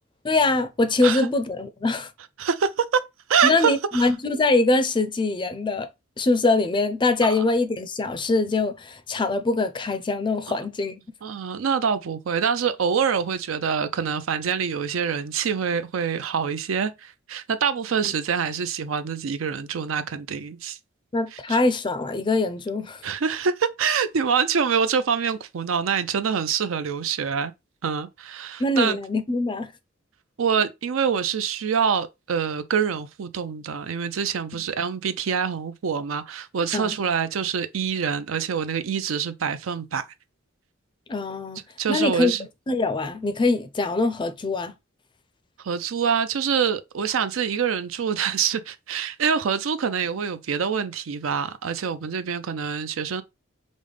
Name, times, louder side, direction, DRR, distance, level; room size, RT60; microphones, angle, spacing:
voice 1, 0.2-2.1 3.4-5.9 6.2-11.0 21.1-23.0 28.6-29.7 36.7-37.0 41.1-41.6 41.9-42.3 42.7-44.7, left 2 dB, 25° left, 0.4 m, -23 dB
voice 2, 2.4-3.0 3.3-4.1 7.2-7.4 10.5-10.6 11.2-20.8 21.3-21.6 23.0-27.5 27.8-29.0 30.4-40.1 41.8-42.5 45.6-53.2, right 6 dB, 80° right, 0.5 m, -25 dB
5.2 x 2.1 x 3.2 m
head